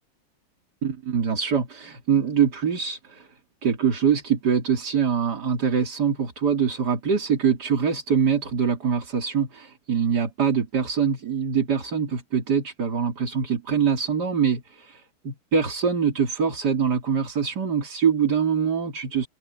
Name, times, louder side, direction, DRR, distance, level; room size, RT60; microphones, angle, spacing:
voice 1, 0.8-3.3 3.6-19.3, right 7 dB, 50° right, 3.3 m, -24 dB
open air
omnidirectional pair, 2.3 m